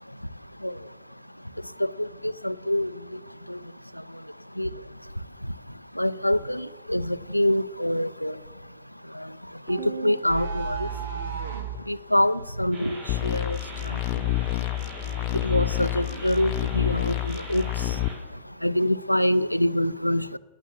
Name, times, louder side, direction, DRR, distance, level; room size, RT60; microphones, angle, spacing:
voice 1, 1.8-2.9 3.5-3.6 4.6-4.7 6.0-8.3 9.7-9.8 10.0-10.9 11.9-13.6 13.9-14.0 15.4-17.6 18.6-20.4, left 1 dB, 90° left, 16 dB, 0.4 m, -25 dB
sound 1, 9.7-11.8, right 5 dB, 65° right, 2.0 m, -32 dB
sound 2, 12.7-18.1, right 2 dB, 45° right, 4.9 m, -41 dB
sound 3, 13.1-18.1, left 17 dB, 40° left, 0.7 m, -28 dB
18.5 x 11.0 x 7.2 m, 1.3 s
figure-of-eight pair, 90°, 0 cm